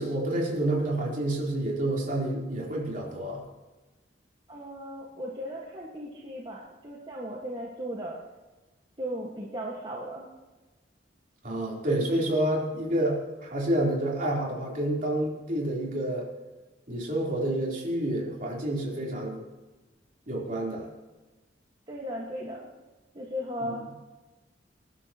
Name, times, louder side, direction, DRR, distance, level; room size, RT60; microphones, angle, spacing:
voice 1, 0.0-3.4 11.4-16.3 16.9-19.4 20.3-20.9 23.6-23.8, right 1 dB, 50° right, -3 dB, 4.0 m, -29 dB
voice 2, 4.5-8.2 9.0-10.3 21.9-22.7 23.1-23.8, equal, 30° right, -3 dB, 1.8 m, -36 dB
26.5 x 11.0 x 3.1 m, 1.2 s
head